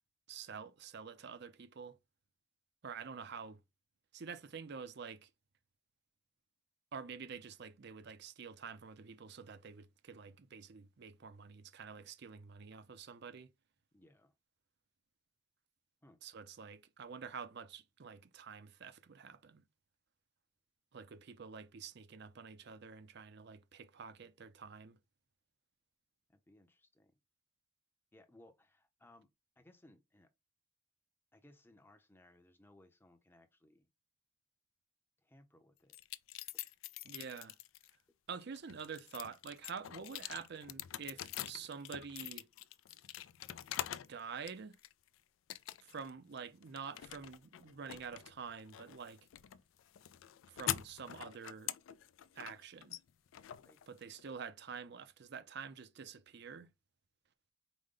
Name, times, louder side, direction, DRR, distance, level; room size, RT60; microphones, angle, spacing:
voice 1, 0.3-2.0 2.8-3.6 4.1-5.3 6.9-13.5 16.2-19.7 20.9-25.0 37.0-37.6 38.3-42.5 44.1-44.8 45.8-49.2 50.5-51.7 52.3-53.0 53.9-56.7, right 6 dB, 55° right, 0.5 m, -48 dB
voice 2, 13.9-14.3 16.0-16.2 26.3-27.1 28.1-29.3 29.6-30.3 31.3-33.9 35.2-36.0 37.0-37.2 53.6-53.8, left 1 dB, 10° left, 0.6 m, -63 dB
sound 1, 35.9-37.9 38.4-44.1 44.5-45.1 45.5-46.1 46.4-54.3, left 12 dB, 70° left, 0.3 m, -45 dB
4.9 x 2.1 x 3.7 m
head